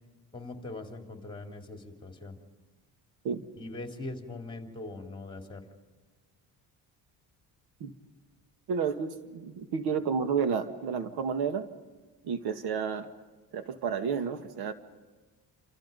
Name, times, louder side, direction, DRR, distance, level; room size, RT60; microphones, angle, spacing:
voice 1, 0.3-2.4 3.6-5.6, left 2 dB, 15° left, 4 dB, 3.3 m, -41 dB
voice 2, 8.7-11.7 12.2-13.1 13.5-14.7, right 6 dB, 85° right, 9 dB, 2.0 m, -31 dB
28.5 x 27.5 x 5.4 m, 1.3 s
cardioid pair, 150°, 38 cm